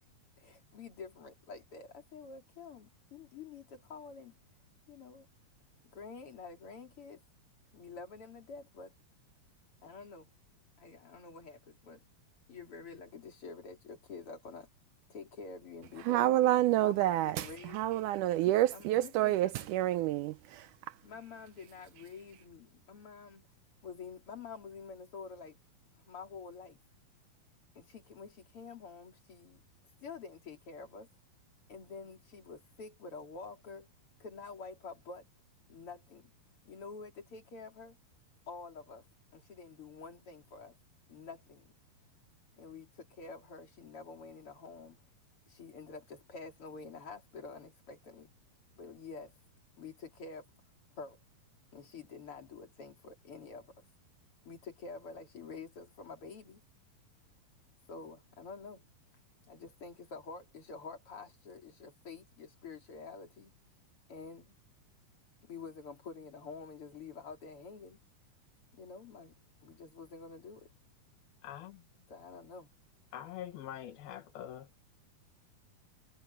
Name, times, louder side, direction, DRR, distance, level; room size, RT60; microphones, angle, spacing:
voice 1, 0.4-4.4 4.9-5.3 5.9-7.2 7.7-8.9 9.8-10.3 10.8-12.0 12.5-14.7 15.1-16.5 16.8-18.1 18.7-19.7 21.0-23.5 23.8-25.6 25.9-26.8 27.8-29.6 30.0-31.1 31.7-33.9 34.2-35.3 35.7-36.3 36.7-38.0 38.5-39.0 39.3-40.8 41.1-41.7 42.5-45.0 45.5-48.3 48.8-49.3 49.8-50.5 51.0-51.2 51.7-53.8 54.4-56.6 57.9-58.8 59.5-63.5 64.1-64.5 65.4-68.0 68.7-69.3 69.6-70.7 72.1-72.7, left 4 dB, 40° left, 3.9 m, -48 dB
voice 2, 16.1-17.5 17.7-20.7, right 15 dB, 85° right, 1.8 m, -28 dB
voice 3, 71.4-71.8 73.1-74.7, left 11 dB, 85° left, 3.5 m, -44 dB
omnidirectional pair, 4.2 m